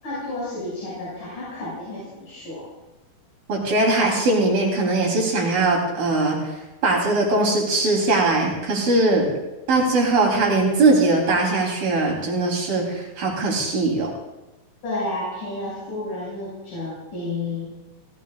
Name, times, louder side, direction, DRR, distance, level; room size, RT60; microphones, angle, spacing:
voice 1, 0.0-2.6 14.8-17.8, left 2 dB, 60° left, -7 dB, 8.1 m, -31 dB
voice 2, 3.5-6.4 6.8-9.3 9.7-14.1, right 2 dB, 70° right, -2 dB, 5.5 m, -20 dB
28.5 x 18.5 x 2.5 m, 1.0 s
omnidirectional pair, 4.2 m